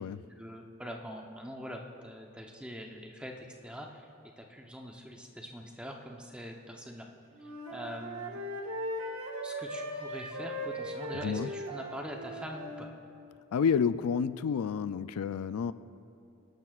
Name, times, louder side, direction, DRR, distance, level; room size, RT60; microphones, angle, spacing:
voice 1, 0.4-4.1 4.4-7.1 7.4-8.4 9.4-12.9, equal, 5° right, 1 dB, 0.8 m, -44 dB
Wind instrument woodwind instrument, 7.4-12.9, equal, 75° right, 1.5 m, -38 dB
voice 2, 13.5-15.7, left 6 dB, 90° left, 15 dB, 0.3 m, -29 dB
23.0 x 12.0 x 2.4 m, 2.6 s
head